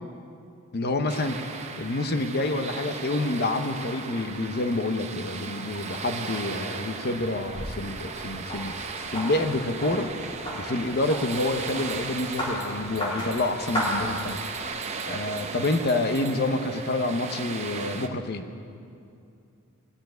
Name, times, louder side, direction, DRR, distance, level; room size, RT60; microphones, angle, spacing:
voice 1, 0.7-1.4 1.8-10.1 10.5-18.4, left 2 dB, 45° left, 8 dB, 0.8 m, -28 dB
sound 1, 1.1-18.1, right 4 dB, 30° right, 0.7 m, -37 dB
sound 2, 7.1-14.7, equal, 20° left, 3.0 m, -35 dB
sound 3, 11.3-16.5, right 9 dB, 60° right, 1.0 m, -46 dB
18.5 x 7.3 x 9.1 m, 2.5 s
head